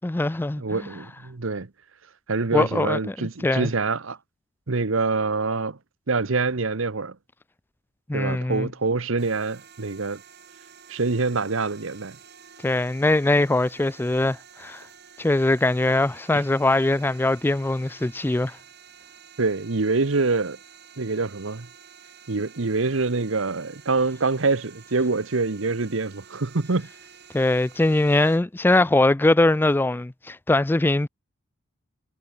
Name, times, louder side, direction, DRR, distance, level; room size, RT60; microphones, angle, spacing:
voice 1, 0.0-0.8 2.5-3.7 8.1-8.7 12.6-14.8 15.2-18.6 27.3-31.1, left 2 dB, 10° left, 0.3 m, -22 dB
voice 2, 0.6-1.7 2.3-4.2 4.7-5.8 6.1-7.2 8.1-10.2 10.9-12.2 16.3-16.4 19.4-20.6 21.0-21.7 22.3-26.9, right 3 dB, 65° right, 1.0 m, -25 dB
sound 1, 9.2-28.4, right 7 dB, 50° right, 7.7 m, -50 dB
head